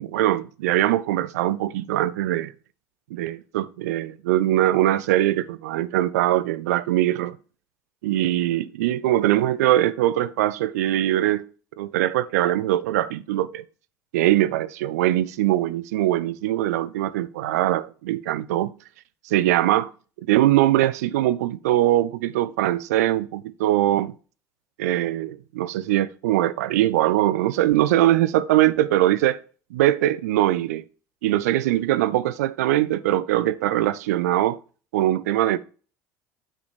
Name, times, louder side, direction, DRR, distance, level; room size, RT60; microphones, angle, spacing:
voice 1, 0.0-2.5 3.1-7.4 8.0-11.4 11.8-13.6 14.1-18.7 19.3-19.9 20.3-24.1 24.8-29.4 29.7-30.8 31.2-34.6 34.9-35.6, right 14 dB, 80° right, 0.5 m, -22 dB
8.8 x 4.1 x 4.8 m
hypercardioid pair, 75°, 9 cm